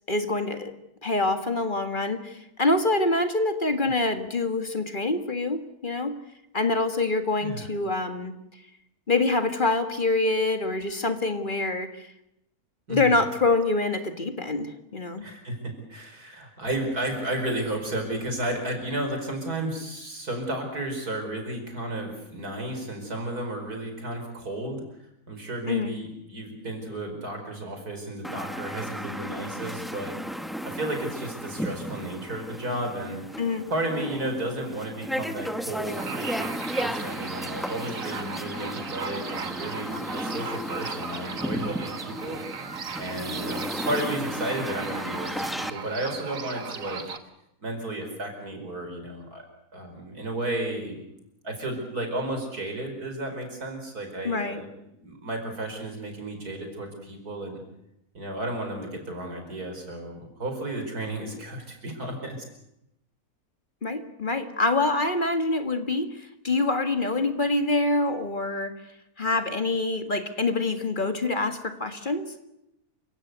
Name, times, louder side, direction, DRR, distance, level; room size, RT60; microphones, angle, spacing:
voice 1, 0.1-0.7 1.0-6.1 6.5-8.3 9.1-11.9 12.9-15.2 25.7-25.9 33.4-33.7 54.2-54.6 63.8-66.1 66.4-68.8 69.2-72.3, left 2 dB, 35° left, 7 dB, 1.9 m, -25 dB
voice 2, 12.9-13.2 15.2-24.8 25.3-30.2 30.4-33.2 33.7-42.4 43.0-47.0 47.6-49.4 49.7-51.0 51.4-54.7 55.0-57.6 58.1-62.4, right 1 dB, 80° right, 4 dB, 5.4 m, -33 dB
sound 1, 28.2-45.7, equal, ahead, 0.8 m, -34 dB
sound 2, 35.8-47.2, right 5 dB, 60° right, 1.9 m, -37 dB
28.5 x 16.5 x 8.2 m, 0.84 s
omnidirectional pair, 1.6 m